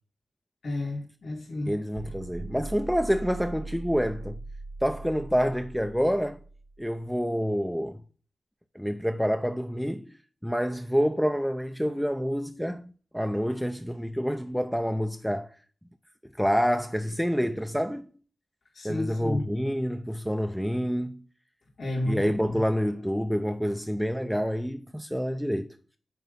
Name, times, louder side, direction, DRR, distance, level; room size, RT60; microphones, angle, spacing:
voice 1, 0.6-1.7 18.7-19.4 21.8-22.6, left 1 dB, 85° left, 2.5 m, -31 dB
voice 2, 1.7-4.4 4.8-6.4 6.8-8.0 8.8-10.1 10.4-15.5 16.4-18.1 18.8-21.2 22.0-25.7, equal, ahead, 0.4 m, -27 dB
sound 1, 1.9-7.0, right 2 dB, 85° right, 1.8 m, -40 dB
9.2 x 3.4 x 5.4 m
wide cardioid pair, 135°, 0 cm